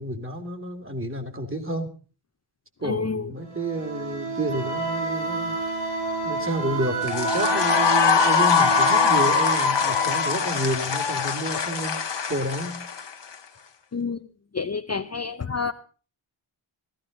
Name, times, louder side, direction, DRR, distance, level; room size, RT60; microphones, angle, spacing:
voice 1, 0.0-1.9 2.8-5.6 6.2-12.0 12.3-12.8, right 1 dB, 25° right, 8 dB, 2.5 m, -30 dB
voice 2, 2.8-3.3 13.9-14.3 14.5-15.7, left 5 dB, 35° left, 8 dB, 0.7 m, -28 dB
sound 1, 3.4-12.0, right 4 dB, 60° right, 7.3 m, -32 dB
Wind instrument woodwind instrument, 4.5-10.3, right 1 dB, 80° right, 3.4 m, -32 dB
sound 2, 7.0-13.3, left 6 dB, 60° left, 1.3 m, -22 dB
16.0 x 14.0 x 5.1 m, 0.37 s
wide cardioid pair, 120°, 48 cm